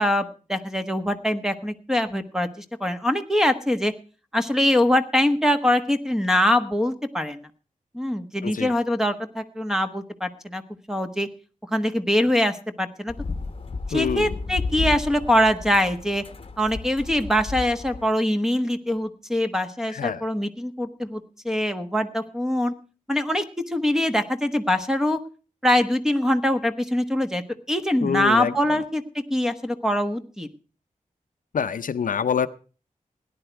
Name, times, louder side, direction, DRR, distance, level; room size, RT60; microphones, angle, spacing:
voice 1, 0.0-3.9 4.3-7.4 7.9-10.6 10.9-11.3 11.7-13.1 13.9-16.2 16.6-22.7 23.1-25.2 25.6-27.4 27.7-29.0 29.3-30.5, left 1 dB, 5° right, 8 dB, 1.2 m, -23 dB
voice 2, 8.4-8.7 13.9-14.4 19.9-20.2 28.0-28.8 31.5-32.5, left 7 dB, 75° left, 12 dB, 0.7 m, -26 dB
sound 1, 13.1-18.1, left 3 dB, 40° left, 1.1 m, -33 dB
17.5 x 10.5 x 4.5 m, 0.37 s
wide cardioid pair, 125°, 14 cm